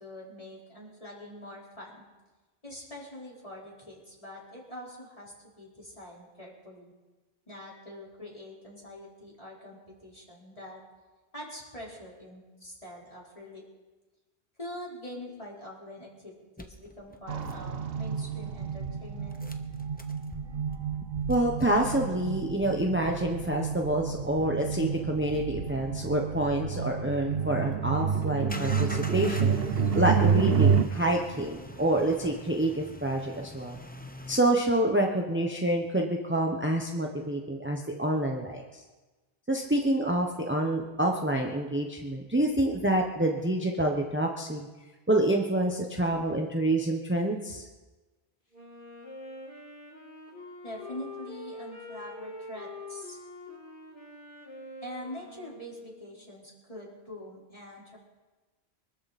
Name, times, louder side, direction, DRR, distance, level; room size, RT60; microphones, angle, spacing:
voice 1, 0.0-2.0 2.6-6.9 7.5-10.8 11.3-13.6 14.6-19.4 50.6-53.2 54.8-58.0, left 1 dB, 35° left, -5 dB, 4.7 m, -44 dB
sound 1, 16.6-18.2 19.3-27.4 28.5-34.4, left 1 dB, 10° left, 1.0 m, -45 dB
sound 2, 17.3-30.8, right 6 dB, 65° right, 1.1 m, -29 dB
voice 2, 21.3-29.5 29.9-33.8 34.3-38.8 39.5-44.7 45.1-47.7, right 1 dB, 10° right, 1 dB, 1.1 m, -27 dB
Wind instrument woodwind instrument, 48.5-56.3, left 2 dB, 55° left, 3.8 m, -45 dB
24.5 x 13.0 x 4.3 m, 1.2 s
omnidirectional pair, 1.1 m